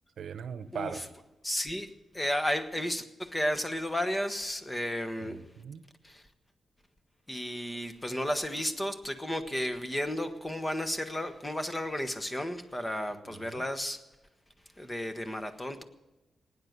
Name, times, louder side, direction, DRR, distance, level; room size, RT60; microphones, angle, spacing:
voice 1, 0.2-1.1 5.2-5.8 13.2-13.6, right 7 dB, 75° right, 12 dB, 0.9 m, -40 dB
voice 2, 0.7-1.0 1.4-5.4 6.0-6.2 7.3-14.0 14.8-15.8, equal, 15° left, 8 dB, 1.2 m, -33 dB
18.5 x 9.4 x 8.0 m, 1.0 s
cardioid pair, 95°, 0 cm